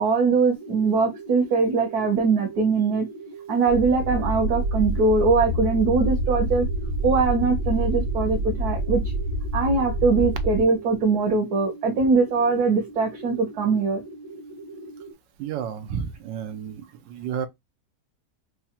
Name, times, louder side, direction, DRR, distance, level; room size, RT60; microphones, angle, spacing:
voice 1, 0.0-3.1 3.5-6.7 7.0-9.1 9.5-14.0, right 4 dB, 65° right, 1.3 m, -22 dB
sound 1, 0.5-15.1, right 3 dB, 30° left, 0.6 m, -41 dB
sound 2, 3.7-10.6, right 1 dB, 25° right, 0.9 m, -27 dB
voice 2, 15.4-17.5, right 8 dB, 85° right, 1.3 m, -31 dB
4.7 x 2.3 x 2.7 m
omnidirectional pair, 1.9 m